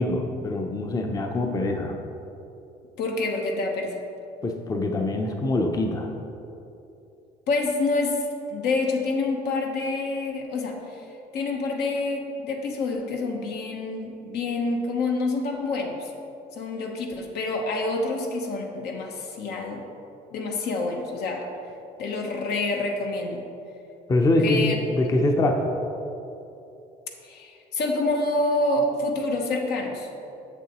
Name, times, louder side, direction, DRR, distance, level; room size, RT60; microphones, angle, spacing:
voice 1, 0.0-2.0 4.4-6.1 24.1-25.7, left 2 dB, 20° left, 3 dB, 0.5 m, -24 dB
voice 2, 3.0-4.0 7.5-8.2 8.5-11.1 11.3-16.1 16.5-19.8 20.3-21.5 22.0-23.4 24.4-24.7 27.2-30.1, left 2 dB, 75° left, 2 dB, 0.9 m, -27 dB
7.3 x 6.7 x 3.0 m, 2.8 s
cardioid pair, 110°, 17 cm